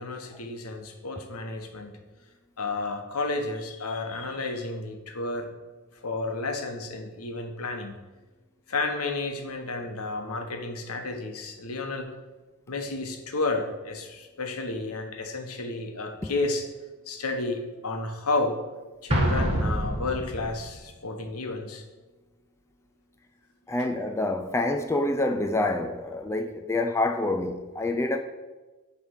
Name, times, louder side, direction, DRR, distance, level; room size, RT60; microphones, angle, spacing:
voice 1, 0.0-2.0 2.6-5.5 6.0-7.9 8.7-12.1 12.7-16.7 17.1-18.6 19.0-21.8, left 3 dB, 80° left, 1.1 m, -31 dB
Explosion, 19.1-20.7, equal, 30° right, 1.4 m, -26 dB
voice 2, 23.7-28.2, left 2 dB, 10° left, 0.4 m, -27 dB
9.5 x 3.3 x 6.4 m
head